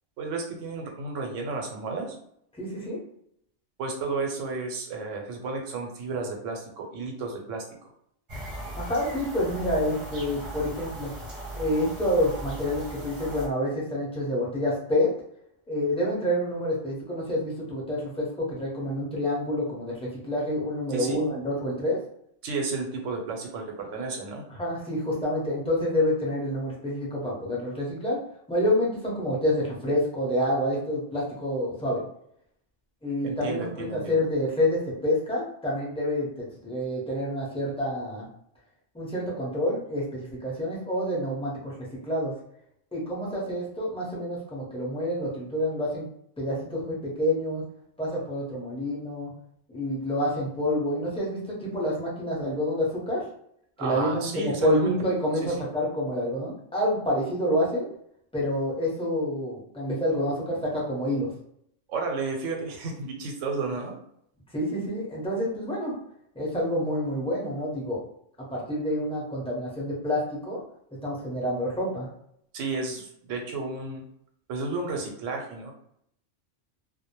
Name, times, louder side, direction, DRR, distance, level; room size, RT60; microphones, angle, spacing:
voice 1, 0.2-2.2 3.8-7.9 20.9-21.2 22.4-24.4 33.2-34.2 53.8-54.9 55.4-55.5 61.9-64.0 72.5-74.0 74.5-75.7, right 3 dB, 80° right, 2 dB, 1.0 m, -32 dB
voice 2, 2.6-3.0 8.7-11.1 11.5-15.1 15.7-22.0 24.5-28.2 28.5-32.0 33.0-38.3 38.9-41.7 42.0-42.3 42.9-46.1 46.4-47.6 48.0-49.3 49.7-53.2 53.8-57.9 58.3-61.3 64.5-65.9 66.3-68.0 68.5-70.6 71.0-72.1, left 1 dB, 5° left, -5 dB, 0.6 m, -28 dB
sound 1, 8.3-13.5, right 1 dB, 30° right, 0.7 m, -38 dB
2.2 x 2.1 x 2.9 m, 0.70 s
omnidirectional pair, 1.3 m